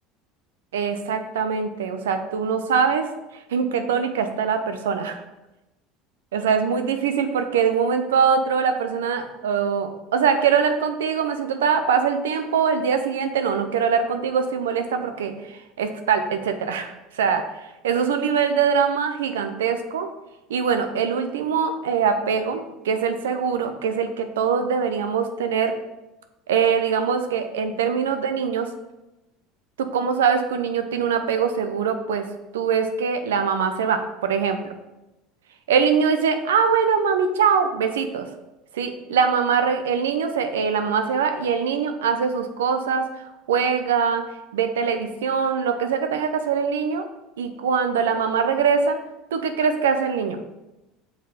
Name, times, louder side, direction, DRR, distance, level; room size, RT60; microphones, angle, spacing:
voice 1, 0.7-3.1 3.5-5.2 6.3-17.4 17.8-20.1 20.5-25.8 26.5-28.7 29.8-32.3 32.5-34.6 35.7-38.3 38.7-43.1 43.5-44.3 44.5-47.1 47.4-49.0 49.3-50.4, right 6 dB, 85° right, 7 dB, 0.6 m, -23 dB
5.7 x 4.3 x 5.0 m, 0.98 s
hypercardioid pair, 85°, 0 cm